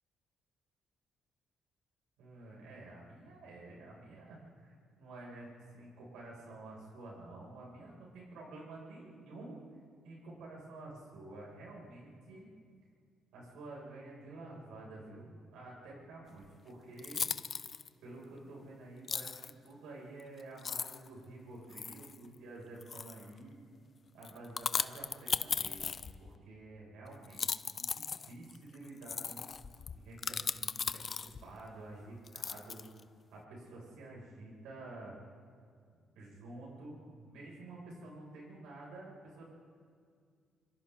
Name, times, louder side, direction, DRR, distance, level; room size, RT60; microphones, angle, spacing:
voice 1, 2.2-9.5 10.0-12.5 13.3-17.2 18.0-23.6 24.1-27.5 27.7-29.4 29.9-32.8 33.3-35.1 36.1-39.4, right 2 dB, 90° right, -4 dB, 6.4 m, -50 dB
sound 1, 16.4-16.5 17.0-17.9 19.1-19.5 20.2-20.3 20.6-21.1 21.7-22.2 22.8-23.3 24.2-26.4 27.2-31.5 32.3-33.0, left 6 dB, 45° left, 0.6 m, -37 dB
28.0 x 26.0 x 3.9 m, 2.2 s
cardioid pair, 90°, 0 cm